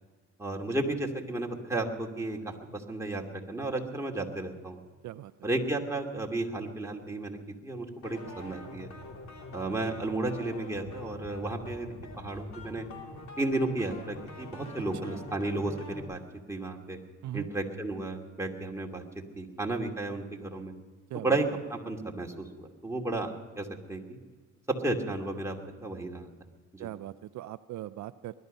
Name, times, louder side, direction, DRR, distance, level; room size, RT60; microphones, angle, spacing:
voice 1, 0.4-4.8 5.4-8.9 9.5-12.9 13.4-16.2 16.5-17.0 17.3-19.0 19.4-20.7 21.1-23.3 23.6-24.2 24.8-25.6 25.8-26.3 26.7-26.9, right 2 dB, 10° right, 0 dB, 2.5 m, -33 dB
voice 2, 5.0-5.5 15.1-15.2 17.2-17.5 21.1-21.4 26.8-28.3, right 14 dB, 70° right, 12 dB, 0.5 m, -40 dB
sound 1, 8.0-16.0, left 2 dB, 65° left, 3.7 m, -45 dB
20.5 x 12.0 x 5.5 m, 1.5 s
cardioid pair, 90°, 30 cm